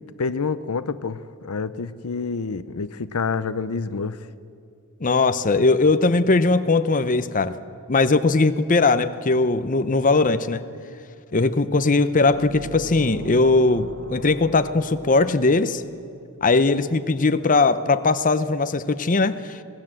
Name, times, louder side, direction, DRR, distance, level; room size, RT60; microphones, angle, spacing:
voice 1, 0.0-4.2, left 4 dB, 75° left, 14 dB, 0.7 m, -28 dB
voice 2, 5.0-7.6 7.9-10.6 11.3-15.8 16.4-19.6, left 3 dB, 35° left, 11 dB, 0.7 m, -19 dB
sound 1, 12.3-16.0, right 2 dB, 50° right, 1.3 m, -39 dB
26.0 x 19.0 x 7.7 m, 2.4 s
head